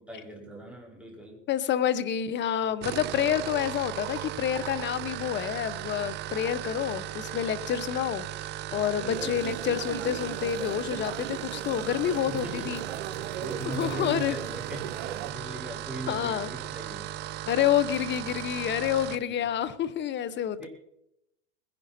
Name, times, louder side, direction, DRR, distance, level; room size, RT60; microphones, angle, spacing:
voice 1, 0.1-1.4 8.7-9.6 12.1-13.0 13.4-17.2 19.2-19.5 20.6-20.7, right 2 dB, 5° right, -2 dB, 5.1 m, -40 dB
voice 2, 1.5-8.3 8.7-12.8 13.7-14.4 16.1-16.5 17.5-20.7, left 10 dB, 30° left, 14 dB, 1.0 m, -28 dB
sound 1, 2.7-19.3, right 13 dB, 30° right, 0.4 m, -37 dB
sound 2, 9.1-15.3, right 10 dB, 75° right, 0.8 m, -38 dB
20.5 x 10.5 x 4.4 m, 0.84 s
hypercardioid pair, 105°, 36 cm